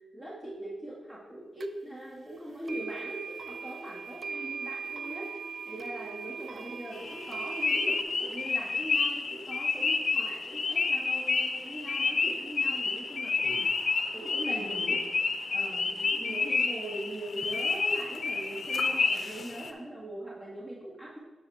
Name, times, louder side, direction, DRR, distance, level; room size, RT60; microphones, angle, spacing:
voice 1, 0.1-5.3 5.7-13.7 14.1-15.0 15.5-21.2, right 1 dB, 30° right, -8 dB, 2.2 m, -41 dB
sound 1, 1.6-1.7 2.6-8.0, right 5 dB, 55° right, 0.4 m, -39 dB
sound 2, 6.9-19.7, left 4 dB, 60° left, 0.7 m, -30 dB
9.2 x 6.1 x 3.6 m, 1.2 s
cardioid pair, 65°, 0 cm